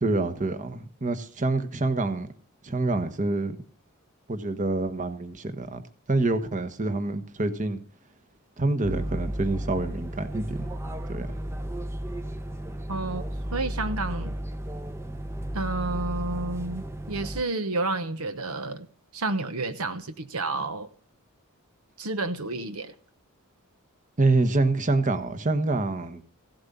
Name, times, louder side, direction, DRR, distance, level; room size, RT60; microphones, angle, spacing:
voice 1, 0.0-2.3 2.6-3.6 4.3-7.8 8.6-10.7 11.1-11.4 13.0-13.1 24.2-26.2, right 2 dB, 35° right, 1.2 m, -26 dB
sound 1, 8.8-17.4, right 1 dB, 10° right, 0.7 m, -34 dB
voice 2, 12.9-13.2 13.5-14.3 15.5-18.9 19.1-20.9 22.0-22.9, right 2 dB, 70° right, 1.0 m, -30 dB
16.0 x 7.9 x 6.8 m
head